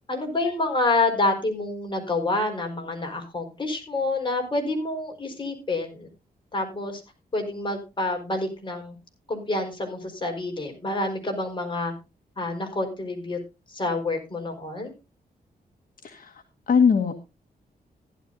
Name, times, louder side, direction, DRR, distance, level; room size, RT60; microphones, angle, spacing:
voice 1, 0.1-6.1 6.5-7.0 7.3-9.0 9.3-11.9 12.4-13.4 13.7-14.9, left 2 dB, 30° left, 2 dB, 4.6 m, -28 dB
voice 2, 16.0-17.1, left 6 dB, 55° left, 5 dB, 1.4 m, -22 dB
15.5 x 11.5 x 2.7 m, 0.27 s
cardioid pair, 100°, 17 cm